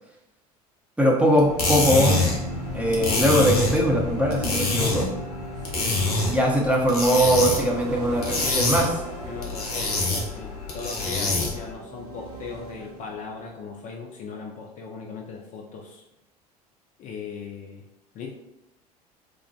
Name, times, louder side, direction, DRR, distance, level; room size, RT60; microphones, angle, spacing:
voice 1, 1.0-2.3 2.7-5.1 6.3-9.0, equal, 5° right, -2 dB, 0.6 m, -21 dB
sound 1, 1.4-11.7, left 3 dB, 80° left, 0.7 m, -26 dB
sound 2, 1.5-11.0 11.7-13.8, right 1 dB, 75° right, 0.5 m, -37 dB
Wind instrument woodwind instrument, 4.9-13.1, left 1 dB, 10° left, 1.0 m, -45 dB
voice 2, 5.6-6.5 9.2-16.0 17.0-17.8 18.1-18.3, left 5 dB, 40° left, 1 dB, 0.4 m, -38 dB
2.9 x 2.1 x 2.6 m, 0.90 s
hypercardioid pair, 70°, 20 cm